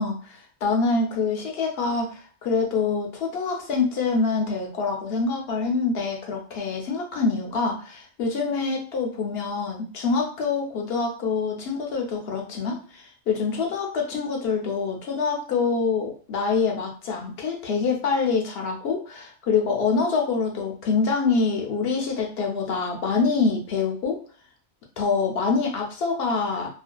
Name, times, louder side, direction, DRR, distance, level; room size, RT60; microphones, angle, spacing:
voice 1, 0.0-24.2 25.0-26.7, left 4 dB, 75° left, 1 dB, 0.9 m, -25 dB
2.5 x 2.4 x 2.2 m, 0.40 s
omnidirectional pair, 1.1 m